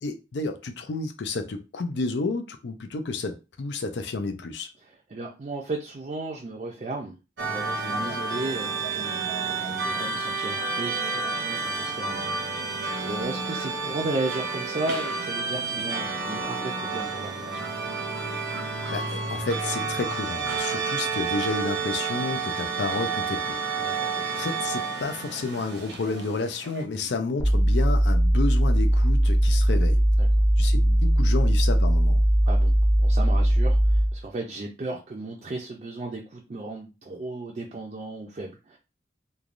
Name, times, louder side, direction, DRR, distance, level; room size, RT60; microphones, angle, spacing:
voice 1, 0.0-4.7 18.9-23.6 23.9-30.0 30.6-32.2, left 3 dB, 80° left, 0.5 m, -31 dB
voice 2, 4.8-7.2 7.4-17.6 23.8-24.5 26.9-27.1 30.2-30.3 32.5-32.7 33.0-38.8, right 2 dB, 40° right, 0.4 m, -35 dB
sound 1, 7.4-26.8, right 4 dB, 85° right, 0.8 m, -30 dB
sound 2, 27.4-34.2, right 1 dB, 15° left, 0.6 m, -20 dB
3.2 x 2.2 x 2.5 m
head